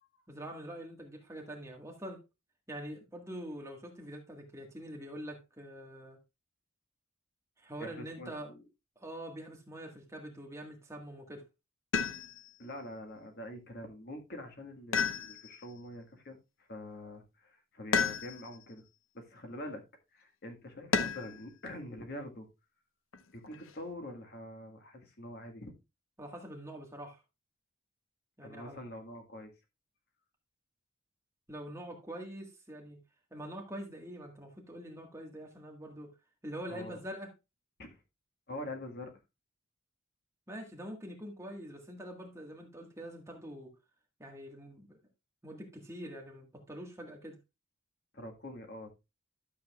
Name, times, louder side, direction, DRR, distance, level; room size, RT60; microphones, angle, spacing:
voice 1, 0.3-2.2 2.7-6.2 7.6-8.5 8.9-11.4 26.2-27.2 28.4-28.8 31.5-33.0 33.3-36.1 36.4-37.3 40.5-43.7 44.2-45.0 45.4-47.4, right 1 dB, 15° right, 1.6 m, -45 dB
voice 2, 7.8-8.3 12.6-18.8 19.1-19.8 20.1-22.5 23.3-25.7 28.4-29.5 36.7-37.0 37.8-38.0 38.5-39.1 48.1-48.9, left 1 dB, 50° left, 1.7 m, -45 dB
sound 1, 11.9-12.6 14.9-15.7 17.9-18.6 20.9-21.4 23.1-23.8, left 5 dB, 70° left, 0.8 m, -32 dB
12.0 x 7.3 x 2.4 m
head